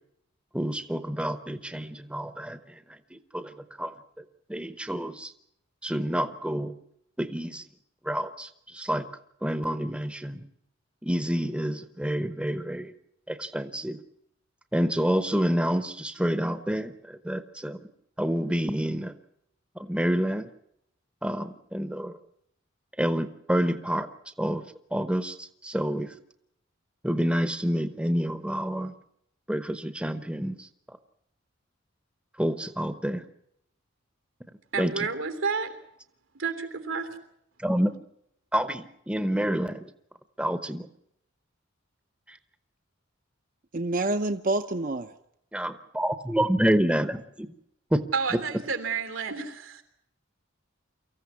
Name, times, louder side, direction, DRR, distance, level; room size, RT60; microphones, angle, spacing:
voice 1, 0.5-5.3 5.8-6.7 7.2-7.7 8.0-9.1 9.4-10.4 11.0-12.9 13.3-14.0 14.7-17.8 18.2-19.1 19.7-20.5 21.2-22.2 23.0-24.1 24.4-24.6 24.9-26.1 27.0-28.9 29.5-31.0 32.4-33.2 34.8-35.1 37.6-37.9 38.5-39.9 40.4-40.9 42.3-42.4 45.5-47.5 47.9-48.0, equal, 5° right, 11 dB, 0.9 m, -28 dB
voice 2, 34.7-35.7 36.4-37.2 48.1-49.8, right 5 dB, 90° right, 7 dB, 3.2 m, -30 dB
voice 3, 43.7-45.1, right 2 dB, 40° right, 7 dB, 0.8 m, -27 dB
24.0 x 15.0 x 9.6 m, 0.76 s
head